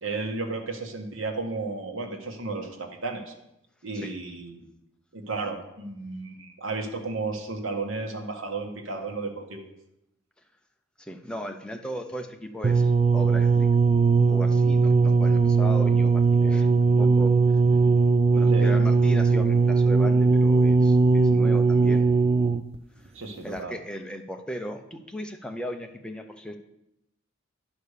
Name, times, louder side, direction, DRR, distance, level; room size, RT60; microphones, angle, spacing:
voice 1, 0.0-3.3 3.8-4.7 5.1-9.6 18.5-18.8 23.1-23.8, right 3 dB, 75° right, 4 dB, 1.4 m, -33 dB
voice 2, 11.0-13.7 14.3-16.7 17.0-17.3 18.3-22.1 23.4-26.6, equal, 5° left, 4 dB, 0.7 m, -37 dB
sound 1, 12.6-22.8 23.6-23.7, right 4 dB, 30° right, 0.3 m, -19 dB
10.0 x 5.2 x 6.6 m, 0.86 s
head